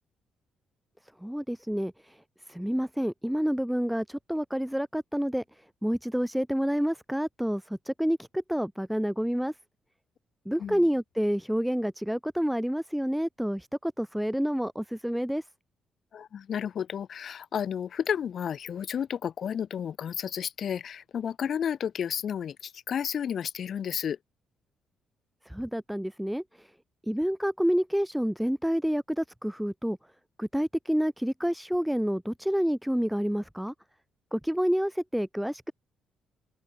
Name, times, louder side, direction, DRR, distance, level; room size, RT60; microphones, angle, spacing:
voice 1, 1.2-2.2 2.5-5.4 5.8-9.5 10.4-15.4 25.5-26.7 27.1-30.0 30.4-33.7 34.3-35.7, equal, ahead, 1.2 m, -28 dB
voice 2, 16.1-24.2, left 8 dB, 55° left, 7.3 m, -32 dB
cardioid pair, 90°, 0 cm